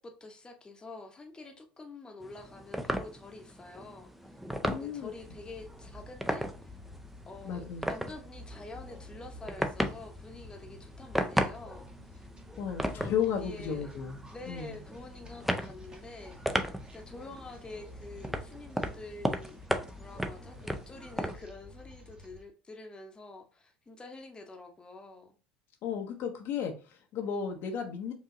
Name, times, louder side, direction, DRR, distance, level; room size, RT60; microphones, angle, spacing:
voice 1, 0.0-4.4 4.7-6.8 7.3-11.8 12.1-12.3 12.9-13.9 14.3-19.6 20.0-25.4, left 2 dB, 15° left, 0.9 m, -47 dB
sound 1, 2.2-21.4, equal, 5° right, 0.5 m, -36 dB
voice 2, 4.6-5.1 7.4-7.8 12.6-14.2 14.5-14.7 25.8-28.1, left 7 dB, 50° left, 0.7 m, -34 dB
sound 2, 5.1-22.4, left 1 dB, 20° right, 1.0 m, -50 dB
4.8 x 2.8 x 2.6 m
figure-of-eight pair, 70°, 5 cm